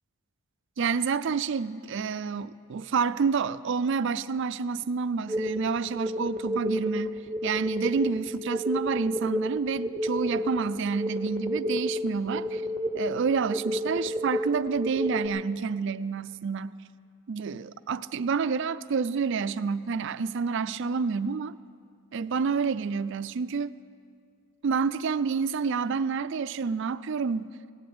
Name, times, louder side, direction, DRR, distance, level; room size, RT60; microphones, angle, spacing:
voice 1, 0.8-7.1 7.4-12.6 12.9-16.8 17.3-21.6 22.1-23.7 24.6-27.5, right 5 dB, 55° right, 14 dB, 0.4 m, -28 dB
sound 1, 5.3-15.3, equal, ahead, 1.2 m, -31 dB
17.0 x 7.7 x 9.7 m, 2.3 s
head